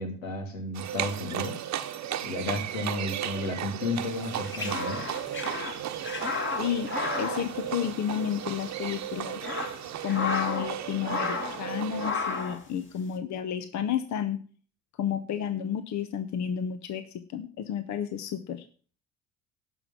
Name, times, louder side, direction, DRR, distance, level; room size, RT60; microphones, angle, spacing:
voice 1, 0.0-1.5 2.2-5.0, left 2 dB, 85° left, 3 dB, 2.9 m, -33 dB
Livestock farm animals working animals, 0.7-12.1, right 11 dB, 45° right, 1.1 m, -35 dB
sound 1, 4.2-8.3 8.6-8.7 9.2-10.8 11.0-11.6 12.0-12.6, left 4 dB, 30° left, 2.3 m, -33 dB
voice 2, 6.6-6.9 7.2-9.4 10.0-14.4 15.0-17.1 17.3-18.6, left 9 dB, 45° left, 11 dB, 1.0 m, -31 dB
12.0 x 5.5 x 7.4 m, 0.41 s
hypercardioid pair, 65°, 38 cm